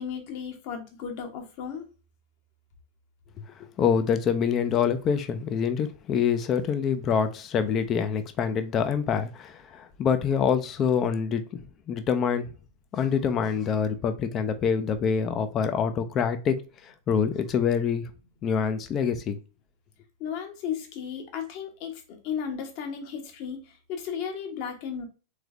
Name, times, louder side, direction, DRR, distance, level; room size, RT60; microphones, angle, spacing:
voice 1, 0.0-1.9 20.2-25.0, left 7 dB, 45° left, 1.0 m, -35 dB
voice 2, 3.6-11.6 11.9-12.5 12.9-18.1 18.4-19.4, left 7 dB, 30° left, 0.5 m, -26 dB
3.8 x 3.2 x 3.3 m
figure-of-eight pair, 90°, 0 cm